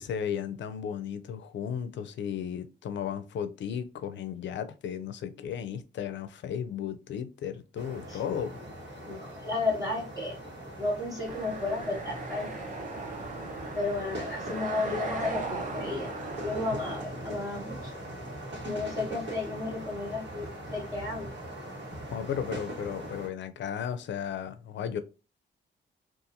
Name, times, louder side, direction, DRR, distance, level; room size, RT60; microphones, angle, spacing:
voice 1, 0.0-8.6 22.1-25.0, left 8 dB, 70° left, 0.4 m, -35 dB
sound 1, 7.8-23.3, right 1 dB, 65° right, 1.2 m, -41 dB
voice 2, 9.0-10.4 10.7-12.5 13.7-16.2 16.4-17.9 18.6-21.3, left 3 dB, 20° right, 0.9 m, -33 dB
sound 2, 11.3-17.0, right 3 dB, 40° right, 0.7 m, -38 dB
2.6 x 2.4 x 2.7 m
wide cardioid pair, 155°, 19 cm